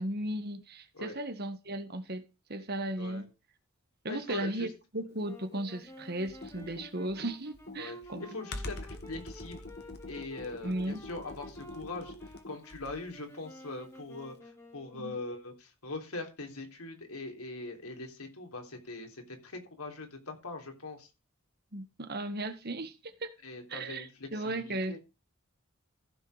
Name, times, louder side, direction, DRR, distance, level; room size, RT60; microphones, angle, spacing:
voice 1, 0.0-3.3 4.0-8.3 10.6-11.0 14.9-15.1 21.7-23.3 23.7-25.0, right 1 dB, 45° right, 1.6 m, -36 dB
voice 2, 4.1-4.7 7.8-9.7 10.1-21.1 23.4-25.0, left 2 dB, 90° left, 3.5 m, -42 dB
sound 1, 5.2-15.3, equal, 15° left, 2.3 m, -52 dB
Computer keyboard, 6.3-13.1, left 2 dB, 50° left, 1.8 m, -44 dB
15.0 x 6.8 x 5.0 m
head